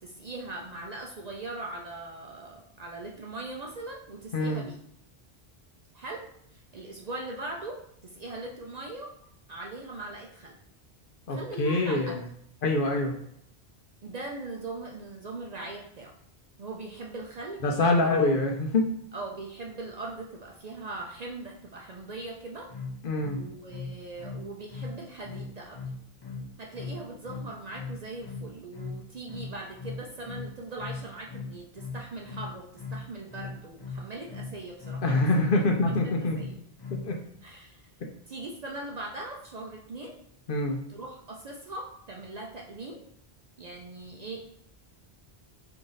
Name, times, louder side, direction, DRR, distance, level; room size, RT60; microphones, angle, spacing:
voice 1, 0.0-4.8 5.9-6.2 6.5-9.1 9.5-10.6 11.3-12.2 14.0-16.1 16.6-18.3 19.1-22.7 23.3-25.8 26.6-35.5 35.9-36.6 37.4-37.8 38.2-40.2 40.9-43.0 43.6-44.4, right 2 dB, 50° right, 0 dB, 0.5 m, -40 dB
voice 2, 4.3-4.6 11.3-12.2 12.6-13.2 17.6-18.9 23.0-23.4 35.0-36.4 36.9-37.2 40.5-40.8, left 2 dB, 60° left, 2 dB, 0.8 m, -25 dB
sound 1, 22.7-37.2, left 4 dB, 40° left, 0.3 m, -39 dB
4.6 x 2.6 x 3.9 m, 0.69 s
omnidirectional pair, 1.1 m